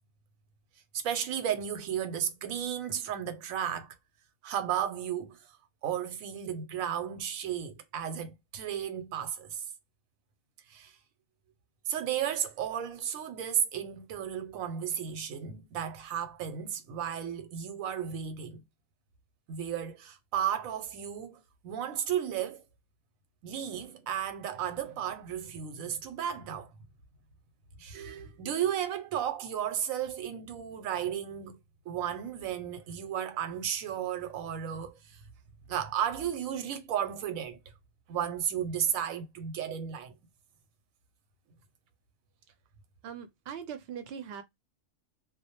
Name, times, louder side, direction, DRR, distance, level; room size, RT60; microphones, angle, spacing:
voice 1, 0.9-3.9 4.4-5.5 5.8-9.7 10.7-10.9 11.9-18.6 19.5-22.6 23.4-26.7 27.8-31.6 31.9-35.2 35.7-37.6 38.1-40.1, right 9 dB, 90° right, 1.0 m, -34 dB
voice 2, 43.0-44.4, right 8 dB, 60° right, 0.7 m, -41 dB
2.2 x 2.0 x 2.8 m
omnidirectional pair, 1.4 m